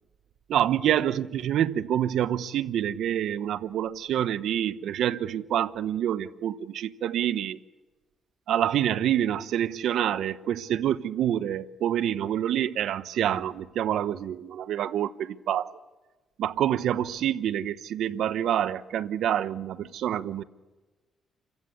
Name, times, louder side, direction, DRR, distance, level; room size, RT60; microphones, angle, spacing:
voice 1, 0.5-7.6 8.5-15.7 16.4-20.4, right 10 dB, 75° right, 1.0 m, -27 dB
29.0 x 15.5 x 8.3 m
cardioid pair, 90°, 0 cm